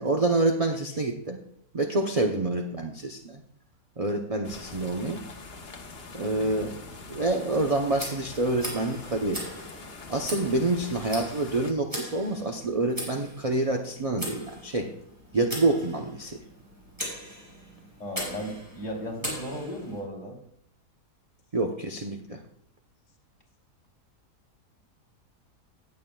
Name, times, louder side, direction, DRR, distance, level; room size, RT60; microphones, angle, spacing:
voice 1, 0.0-1.4 1.7-3.4 4.0-5.2 6.1-6.7 7.1-9.5 10.1-14.9 15.3-16.4 21.5-22.4, right 2 dB, 35° right, 4 dB, 0.6 m, -27 dB
sound 1, 4.4-11.7, left 3 dB, 45° left, 1.2 m, -44 dB
Tick, 7.9-20.0, equal, 10° right, 4.3 m, -40 dB
voice 2, 18.0-20.4, equal, 25° left, -3 dB, 2.8 m, -35 dB
18.0 x 7.9 x 2.3 m, 0.69 s
omnidirectional pair, 1.7 m